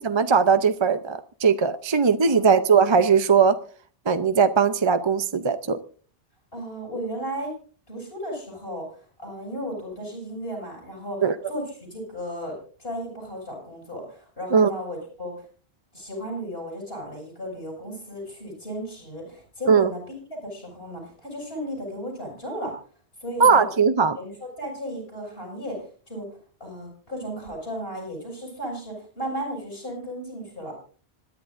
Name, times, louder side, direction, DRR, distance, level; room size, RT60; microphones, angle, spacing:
voice 1, 0.0-3.6 4.1-5.8 11.2-11.3 14.5-14.7 19.7-19.9 23.4-24.2, right 5 dB, 35° right, 0.5 m, -19 dB
voice 2, 2.2-2.5 6.5-7.5 7.9-15.3 15.9-20.2 20.4-22.8 23.2-23.7 24.1-26.3 26.6-30.7, equal, 60° left, 7.8 m, -35 dB
26.0 x 11.0 x 2.5 m
omnidirectional pair, 1.2 m